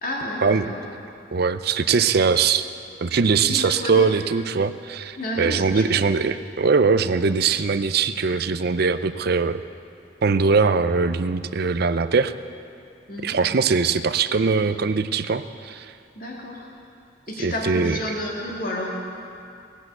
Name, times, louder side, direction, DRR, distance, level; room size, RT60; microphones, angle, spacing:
voice 1, 0.0-0.8 3.5-4.1 5.2-6.0 13.1-13.4 16.2-16.7 17.3-19.1, left 1 dB, 50° left, -2 dB, 2.0 m, -30 dB
voice 2, 1.3-2.7 3.0-9.6 10.2-12.3 13.2-15.9 17.4-18.0, right 5 dB, 55° right, 12 dB, 0.5 m, -21 dB
18.5 x 8.3 x 7.9 m, 2.5 s
head